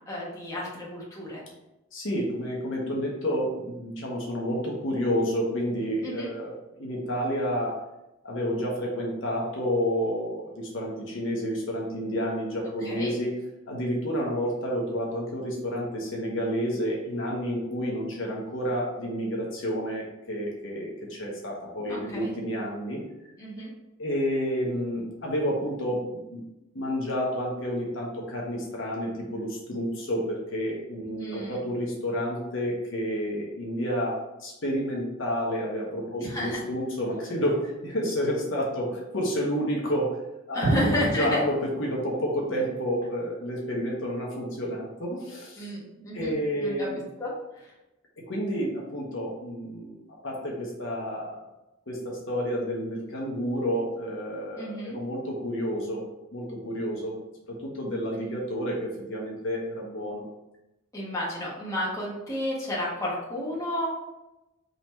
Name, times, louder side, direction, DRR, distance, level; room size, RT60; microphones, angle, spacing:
voice 1, 0.1-1.4 6.0-6.3 12.8-13.1 21.9-22.3 23.4-23.7 31.1-31.6 36.2-36.6 40.5-41.4 45.6-46.9 47.2-47.7 54.6-55.0 60.9-63.9, equal, 15° left, -6 dB, 1.3 m, -31 dB
voice 2, 1.9-7.8 8.2-13.3 13.7-23.0 24.0-26.4 26.7-40.1 40.5-45.7 46.1-47.0 48.3-49.9 50.2-51.4 51.9-56.0 56.3-57.1 57.5-60.2, equal, 65° left, -2 dB, 1.0 m, -30 dB
3.9 x 3.0 x 4.5 m, 0.94 s
head